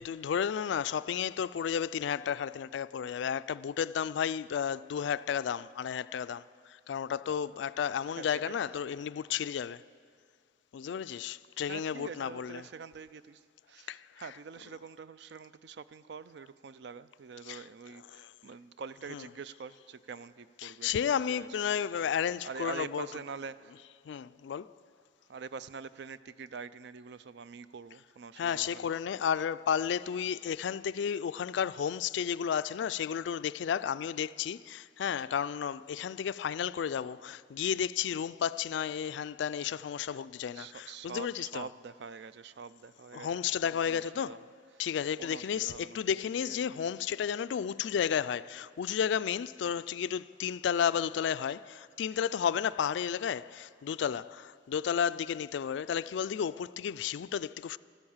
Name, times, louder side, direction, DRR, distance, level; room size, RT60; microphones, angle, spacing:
voice 1, 0.0-9.9 10.7-12.7 13.9-14.3 17.4-17.7 18.1-18.3 19.1-19.3 20.6-23.1 24.1-24.7 28.4-41.7 43.1-44.5 44.8-57.8, left 8 dB, 70° left, 0.3 m, -32 dB
voice 2, 8.2-8.6 11.7-13.4 13.7-20.9 21.3-21.5 22.4-23.7 25.3-28.9 40.5-44.4 45.2-46.6, right 5 dB, 65° right, 0.4 m, -45 dB
14.0 x 12.5 x 7.2 m
head